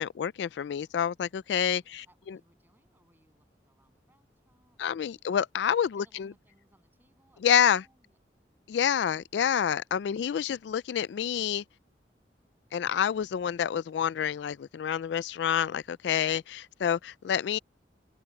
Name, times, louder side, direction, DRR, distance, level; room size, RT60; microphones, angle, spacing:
voice 1, 0.0-2.4 4.8-6.3 7.4-7.8 8.7-11.6 12.7-17.6, left 8 dB, 75° left, 0.3 m, -28 dB
voice 2, 1.9-5.2 6.0-8.2, right 1 dB, 10° right, 8.0 m, -67 dB
open air
head